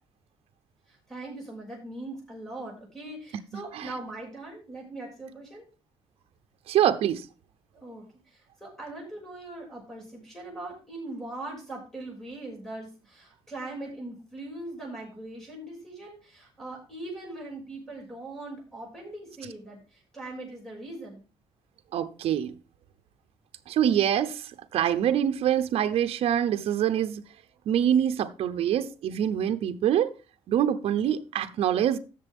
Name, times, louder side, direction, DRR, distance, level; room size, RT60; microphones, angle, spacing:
voice 1, 0.9-5.6 7.7-21.2, right 2 dB, 5° left, 6.2 m, -41 dB
voice 2, 3.5-4.0 6.7-7.3 19.4-19.5 21.9-22.6 23.7-27.2 27.7-30.1 30.5-32.0, right 10 dB, 65° right, 0.9 m, -25 dB
15.5 x 6.8 x 3.6 m
cardioid pair, 145°, 11 cm